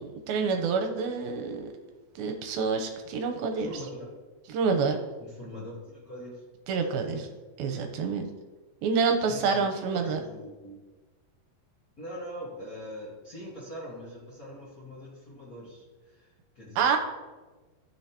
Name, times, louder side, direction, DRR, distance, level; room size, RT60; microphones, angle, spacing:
voice 1, 0.0-1.7 2.2-3.7 4.5-5.0 6.7-7.2 7.6-8.3 8.8-10.2 16.8-17.0, right 5 dB, 80° right, 4 dB, 2.6 m, -27 dB
voice 2, 3.6-4.2 5.2-7.3 9.3-10.8 12.0-17.0, equal, 65° left, -6 dB, 0.9 m, -43 dB
14.5 x 6.3 x 2.9 m, 1.3 s
omnidirectional pair, 4.4 m